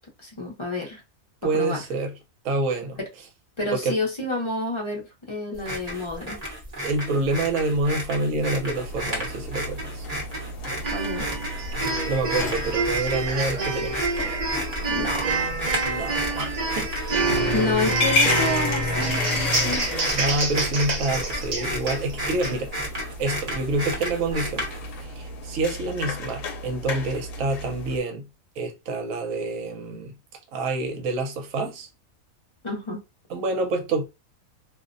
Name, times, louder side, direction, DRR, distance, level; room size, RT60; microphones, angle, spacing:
voice 1, 0.2-1.0 1.5-1.8 3.0-3.1 3.6-6.4 10.9-11.3 14.9-15.4 17.5-19.9 32.6-33.0, left 2 dB, 30° left, 0.6 m, -29 dB
voice 2, 1.4-2.1 2.4-3.0 3.7-4.0 6.8-10.1 11.8-14.0 15.8-17.0 20.1-22.7 23.2-24.7 25.0-28.3 28.6-30.1 30.5-31.9 33.3-34.0, right 2 dB, 75° right, 1.1 m, -27 dB
sound 1, 5.6-25.0, equal, 35° right, 0.8 m, -33 dB
sound 2, 8.7-28.0, left 2 dB, 75° left, 1.0 m, -32 dB
sound 3, 10.8-22.5, right 3 dB, 55° right, 0.4 m, -28 dB
2.5 x 2.1 x 2.5 m
omnidirectional pair, 1.5 m